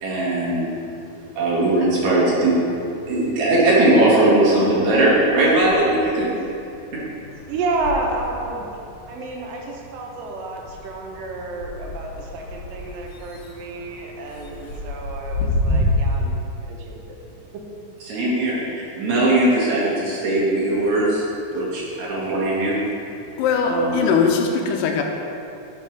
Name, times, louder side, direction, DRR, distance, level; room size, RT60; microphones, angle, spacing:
voice 1, 0.0-0.7 1.4-2.6 3.1-6.3 6.9-7.0 18.1-21.2 21.5-22.8 23.6-24.1, right 2 dB, 60° right, -6 dB, 2.9 m, -19 dB
sound 1, 2.9-3.9 4.2-15.9, left 1 dB, 65° left, 1.4 m, -31 dB
voice 2, 7.5-8.7 9.1-17.2 17.5-17.6, right 3 dB, 85° right, 1 dB, 2.6 m, -30 dB
voice 3, 23.4-25.0, left 6 dB, 85° left, 2 dB, 2.4 m, -20 dB
11.5 x 4.8 x 4.6 m, 2.8 s
omnidirectional pair, 3.8 m